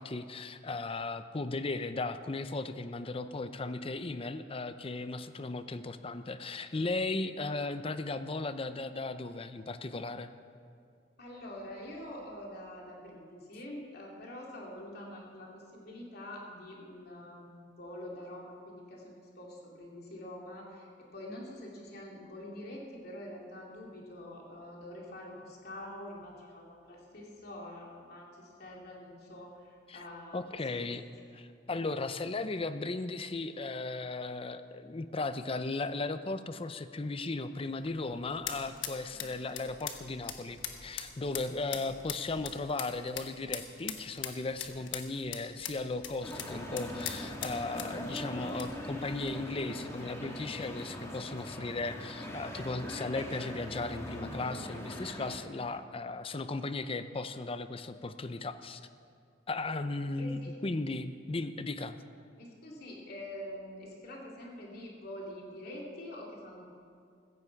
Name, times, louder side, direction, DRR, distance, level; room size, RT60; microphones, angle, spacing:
voice 1, 0.0-10.3 29.9-30.0 30.3-31.0 31.3-58.8 59.5-62.0, left 3 dB, 30° left, 11 dB, 0.6 m, -36 dB
voice 2, 11.2-30.9 41.7-41.8 60.2-60.5 62.4-66.6, left 1 dB, 55° left, -2 dB, 2.9 m, -46 dB
sound 1, 37.7-49.3, left 8 dB, 85° left, 1.2 m, -43 dB
sound 2, 46.2-55.4, equal, 15° left, 1.7 m, -41 dB
15.5 x 15.0 x 4.7 m, 2.3 s
head